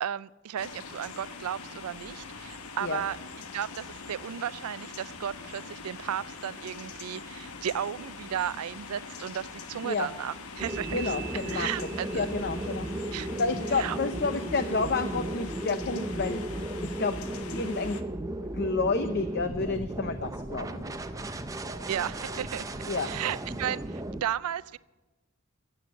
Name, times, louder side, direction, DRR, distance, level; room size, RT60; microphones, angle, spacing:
voice 1, 0.0-3.2 3.5-11.1 11.5-12.3 13.1-13.3 13.8-14.0 21.9-22.7 23.0-24.8, right 9 dB, 85° right, 19 dB, 0.4 m, -34 dB
sound 1, 0.6-18.0, left 4 dB, 85° left, 1.0 m, -43 dB
sound 2, 4.2-6.2 10.5-17.8 18.3-19.9 20.5-24.0, right 8 dB, 45° right, 1.2 m, -51 dB
sound 3, 10.6-24.2, right 1 dB, 15° right, 0.5 m, -35 dB
voice 2, 10.9-11.7 12.1-12.9 13.4-17.2 17.5-18.0 18.5-20.8 22.8-23.1, left 4 dB, 50° left, 9 dB, 0.6 m, -30 dB
16.5 x 7.9 x 8.2 m, 1.2 s
head